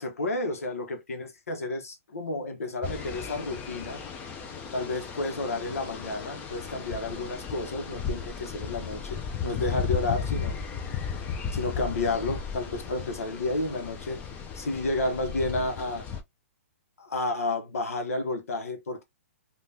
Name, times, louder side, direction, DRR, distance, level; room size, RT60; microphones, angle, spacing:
voice 1, 0.0-4.0 4.7-10.6 11.5-14.2 14.5-16.1 17.0-19.0, left 2 dB, 85° left, 1.0 m, -31 dB
sound 1, 2.8-16.2, left 6 dB, 20° left, 0.6 m, -35 dB
3.4 x 2.4 x 2.7 m
hypercardioid pair, 145°, 8 cm